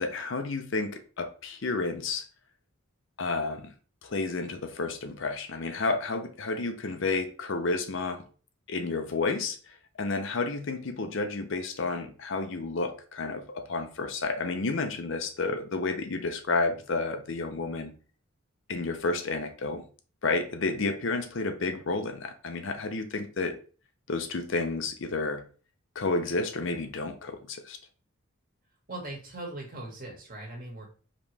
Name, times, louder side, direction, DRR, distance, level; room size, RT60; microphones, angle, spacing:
voice 1, 0.0-2.2 3.2-3.7 4.0-8.2 8.7-9.6 10.0-17.9 18.7-19.8 20.2-23.6 24.1-25.4 26.0-27.8, left 3 dB, 60° left, 0.6 m, -31 dB
voice 2, 28.9-30.8, right 2 dB, 40° right, 1.7 m, -40 dB
5.1 x 3.0 x 3.3 m
head